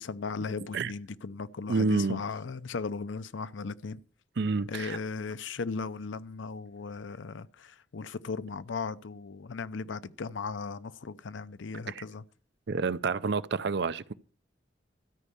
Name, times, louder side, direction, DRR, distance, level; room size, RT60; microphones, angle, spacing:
voice 1, 0.0-4.0 4.7-12.2, left 4 dB, 80° left, 0.6 m, -37 dB
voice 2, 1.7-2.2 4.4-5.0 11.9-12.0 12.7-14.1, right 4 dB, 65° right, 0.6 m, -29 dB
13.0 x 5.4 x 8.5 m
head